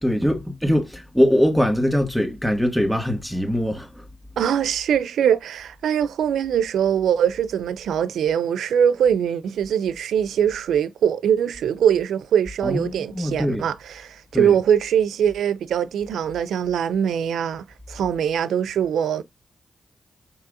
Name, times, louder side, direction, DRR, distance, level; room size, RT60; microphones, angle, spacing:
voice 1, 0.0-4.1 12.6-13.7 14.3-14.6, equal, 5° left, 1.8 m, -22 dB
voice 2, 4.4-19.2, right 8 dB, 80° right, 0.4 m, -22 dB
4.7 x 4.0 x 2.5 m
supercardioid pair, 45°, 0 cm